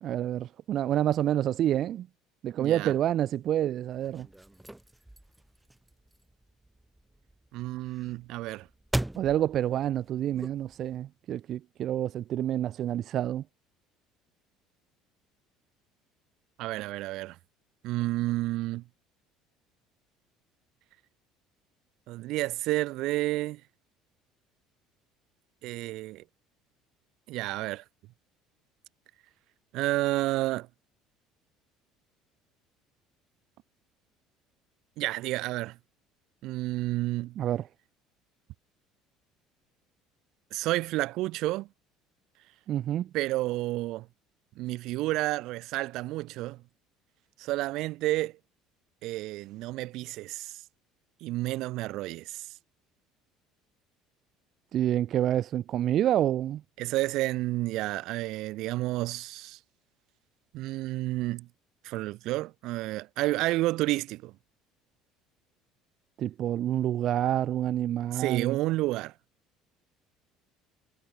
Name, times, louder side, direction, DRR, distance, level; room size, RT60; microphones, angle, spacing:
voice 1, 0.0-2.1 2.4-4.3 9.2-13.4 37.4-37.6 42.7-43.1 54.7-56.6 66.2-68.6, right 11 dB, 45° right, 0.5 m, -28 dB
voice 2, 2.6-2.9 7.5-8.7 16.6-17.4 17.8-18.8 22.1-23.6 25.6-26.2 27.3-27.8 29.7-30.7 35.0-35.8 36.4-37.4 40.5-41.7 43.1-44.1 44.5-46.6 47.4-48.4 49.0-50.6 51.2-52.5 56.8-59.6 60.5-61.5 61.8-64.3 68.1-69.1, right 18 dB, 60° right, 1.5 m, -30 dB
sound 1, 3.9-11.0, right 1 dB, 5° right, 2.8 m, -40 dB
cardioid pair, 155°, 0 cm